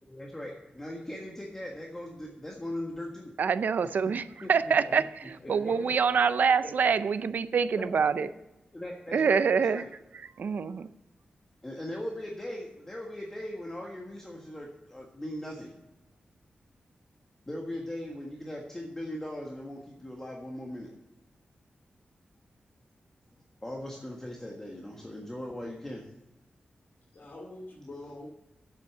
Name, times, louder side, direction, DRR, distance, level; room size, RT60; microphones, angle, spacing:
voice 1, 0.0-3.3 4.4-4.5 5.6-5.7 7.8-7.9 8.2-8.3 8.7-9.9 11.6-15.7 17.5-20.9 23.6-26.1, left 1 dB, 15° left, -1 dB, 1.5 m, -39 dB
voice 2, 3.4-8.3 9.1-9.8 10.1-10.9, right 6 dB, 70° right, 14 dB, 0.5 m, -26 dB
voice 3, 5.4-5.9 27.1-28.3, left 1 dB, 65° left, -3 dB, 2.5 m, -45 dB
8.5 x 7.9 x 7.8 m, 0.94 s
wide cardioid pair, 140°, 3 cm